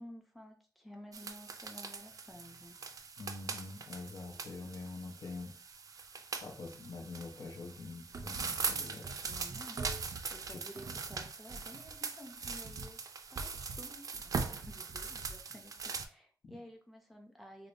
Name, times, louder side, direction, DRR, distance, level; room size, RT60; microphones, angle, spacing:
voice 1, 0.0-2.8 8.9-13.0 13.3-17.7, equal, ahead, 2 dB, 0.5 m, -53 dB
sound 1, 1.1-16.1, right 5 dB, 50° right, 0.3 m, -41 dB
voice 2, 3.2-5.5 6.4-9.0 10.5-10.6 16.4-16.6, left 3 dB, 70° left, 1 dB, 0.8 m, -45 dB
4.9 x 2.1 x 2.5 m, 0.41 s
wide cardioid pair, 165°, 7 cm